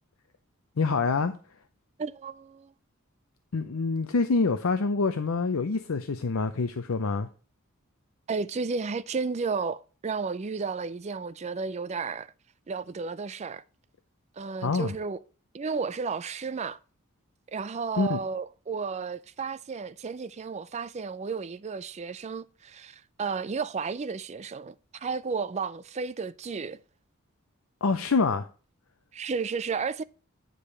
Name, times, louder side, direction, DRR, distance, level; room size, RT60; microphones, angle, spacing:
voice 1, 0.8-1.3 3.5-7.3 14.6-14.9 18.0-18.2 27.8-28.5, left 4 dB, 70° left, 0.6 m, -26 dB
voice 2, 2.0-2.7 8.3-12.3 12.7-13.6 14.4-15.2 15.5-16.8 17.5-26.8 29.1-30.0, right 5 dB, 30° right, 0.4 m, -33 dB
9.1 x 5.0 x 5.6 m
head